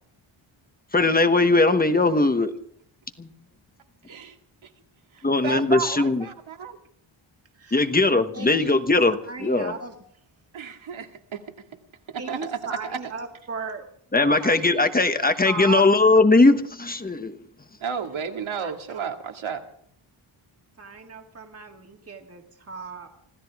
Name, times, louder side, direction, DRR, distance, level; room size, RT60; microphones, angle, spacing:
voice 1, 0.9-2.5 3.2-3.3 5.2-6.3 7.7-9.7 14.1-17.3, left 3 dB, 20° left, 9 dB, 1.1 m, -19 dB
voice 2, 4.0-4.4 4.6-4.7 5.1-6.8 10.5-11.4 12.1-13.0 17.8-19.6, right 6 dB, 70° right, 4 dB, 2.2 m, -32 dB
voice 3, 7.6-7.9 8.3-8.7 9.3-10.0 12.2-13.9 14.1-15.9 18.6-18.7 20.8-23.1, right 4 dB, 30° right, 3 dB, 1.8 m, -37 dB
25.5 x 15.5 x 3.6 m, 0.63 s
wide cardioid pair, 145°, 48 cm